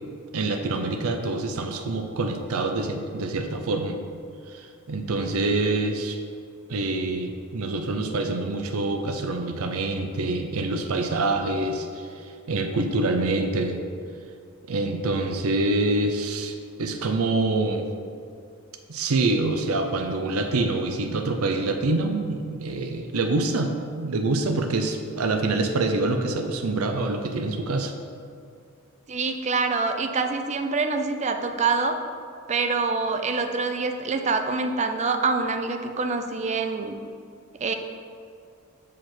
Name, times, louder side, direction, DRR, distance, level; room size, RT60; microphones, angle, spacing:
voice 1, 0.3-4.0 4.5-6.2 6.7-13.8 14.7-17.9 18.9-23.7 24.0-27.9, right 2 dB, 75° right, 6 dB, 0.6 m, -26 dB
voice 2, 29.1-32.0 32.5-36.9 37.6-37.8, right 4 dB, 30° right, 6 dB, 0.5 m, -25 dB
7.7 x 4.9 x 4.3 m, 2.3 s
head